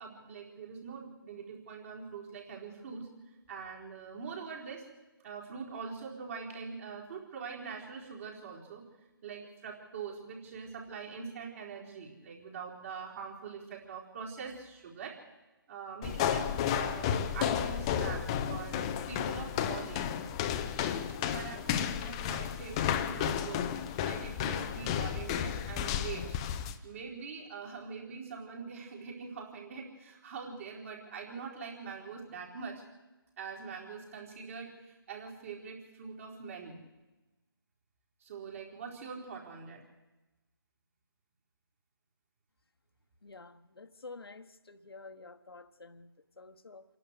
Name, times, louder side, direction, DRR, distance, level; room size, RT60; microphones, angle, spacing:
voice 1, 0.0-3.1 3.5-4.8 5.2-8.9 9.2-15.2 15.7-20.3 21.2-23.7 24.0-26.4 26.8-32.8 33.4-36.8 38.2-39.8, right 5 dB, 35° right, 4.4 m, -43 dB
sound 1, 16.0-26.8, left 9 dB, 15° left, 0.6 m, -32 dB
voice 2, 43.2-46.8, left 3 dB, 80° left, 1.3 m, -50 dB
27.5 x 11.5 x 8.3 m
figure-of-eight pair, 160°, 13 cm